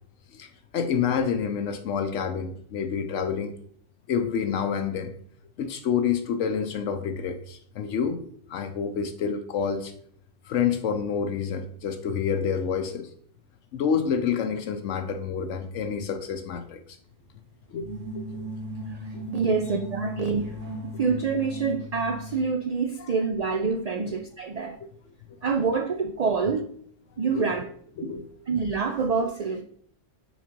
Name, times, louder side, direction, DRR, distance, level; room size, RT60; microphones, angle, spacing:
voice 1, 0.7-3.5 4.1-5.1 5.6-8.2 8.5-9.9 10.5-13.1 13.7-16.8 17.7-18.5 19.1-19.5 23.0-23.1 24.0-24.1 24.8-24.9 27.2-27.7 28.0-28.2, left 7 dB, 80° left, 7 dB, 1.0 m, -28 dB
sound 1, 17.7-22.5, equal, 75° right, 1.7 m, -37 dB
voice 2, 19.0-20.5 20.8-24.8 25.4-26.7 27.2-27.6 28.0-28.1 28.5-29.6, right 5 dB, 60° right, 6 dB, 0.4 m, -26 dB
6.2 x 4.0 x 5.2 m, 0.62 s
omnidirectional pair, 1.3 m